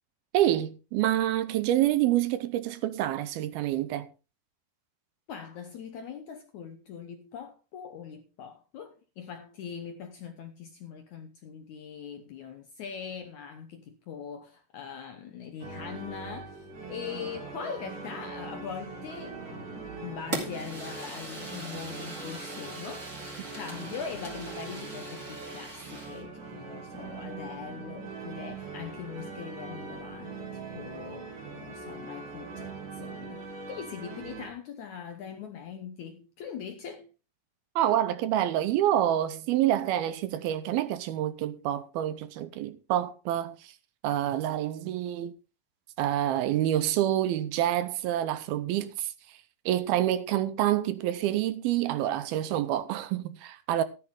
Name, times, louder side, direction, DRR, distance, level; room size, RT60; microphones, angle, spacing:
voice 1, 0.3-4.1 37.8-43.8 44.0-45.3 46.0-53.8, right 12 dB, 75° right, 2.5 m, -27 dB
voice 2, 5.3-23.2 23.5-37.1, left 7 dB, 70° left, 1.8 m, -41 dB
sound 1, 15.6-34.5, right 4 dB, 55° right, 3.9 m, -42 dB
Fire, 20.3-26.2, right 2 dB, 25° right, 3.2 m, -41 dB
13.5 x 10.5 x 3.7 m
omnidirectional pair, 4.6 m